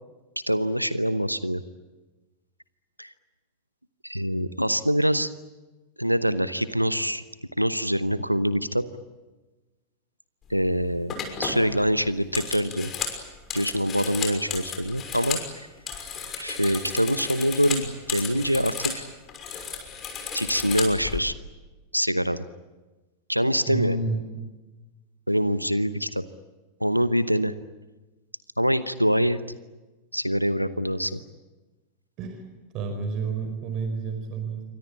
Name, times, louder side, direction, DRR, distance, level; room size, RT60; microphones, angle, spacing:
voice 1, 0.5-1.6 3.0-3.1 4.0-5.3 6.0-7.2 7.6-8.9 10.5-11.1 11.4-12.9 13.5-15.7 16.4-19.0 20.3-21.3 21.9-22.4 23.3-24.0 25.3-26.2 26.8-27.5 28.6-29.4 30.1-31.2, equal, 90° right, 15 dB, 0.9 m, -24 dB
sound 1, 10.5-10.7 11.1-15.5 15.8-19.0 19.3-21.2, left 6 dB, 30° left, 6.1 m, -33 dB
voice 2, 23.7-24.2 31.0-31.1 32.2-32.4 32.7-34.6, right 4 dB, 40° right, 5 dB, 5.1 m, -30 dB
27.5 x 24.5 x 8.6 m, 1.2 s
figure-of-eight pair, 90°, 0 cm